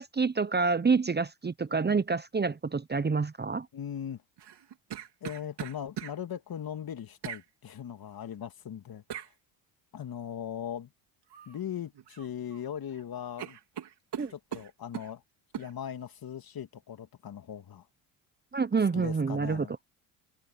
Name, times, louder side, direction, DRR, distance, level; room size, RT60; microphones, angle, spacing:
voice 1, 0.0-3.7 14.2-14.3 18.5-19.7, right 4 dB, 20° right, 1.0 m, -27 dB
voice 2, 3.7-4.2 5.2-9.2 9.9-10.9 11.5-13.6 14.3-15.2 15.6-17.9 18.9-19.7, left 9 dB, 50° left, 2.4 m, -39 dB
sound 1, 4.4-6.2 7.2-7.5 9.1-9.3 11.3-11.6 11.9-12.6 12.9-13.0 13.4-15.1 15.5-15.7, right 9 dB, 55° right, 3.6 m, -40 dB
supercardioid pair, 65°, 47 cm